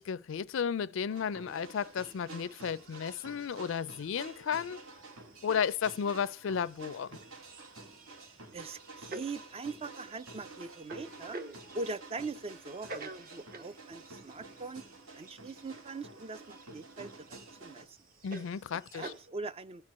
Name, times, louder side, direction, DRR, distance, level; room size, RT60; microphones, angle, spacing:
voice 1, 0.0-4.8 5.4-7.2 18.2-19.1, left 7 dB, 65° left, 0.4 m, -33 dB
sound 1, 1.1-17.8, right 3 dB, 80° right, 1.8 m, -50 dB
sound 2, 1.8-19.3, right 2 dB, 45° right, 1.1 m, -51 dB
voice 2, 8.5-11.4 11.7-14.8 15.1-18.0 18.9-19.8, right 3 dB, 30° right, 0.4 m, -42 dB
13.0 x 4.5 x 7.3 m
head